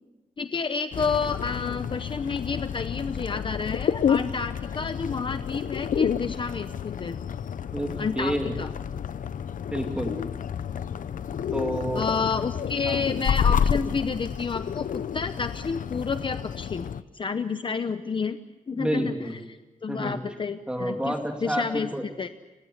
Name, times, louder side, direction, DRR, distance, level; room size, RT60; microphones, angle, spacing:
voice 1, 0.4-7.2 8.0-8.7 11.9-16.9 17.1-18.4 18.7-19.3 19.8-21.1 21.4-21.9 22.2-22.3, left 5 dB, 35° left, 10 dB, 0.8 m, -30 dB
sound 1, 0.9-17.0, left 8 dB, 70° left, 0.7 m, -30 dB
voice 2, 7.7-8.5 9.7-10.2 11.5-12.0 12.8-13.0 18.7-19.4 19.9-20.2 20.7-22.0, right 1 dB, 5° right, 3 dB, 2.8 m, -29 dB
29.0 x 16.5 x 8.0 m, 1.1 s
wide cardioid pair, 180°, 14 cm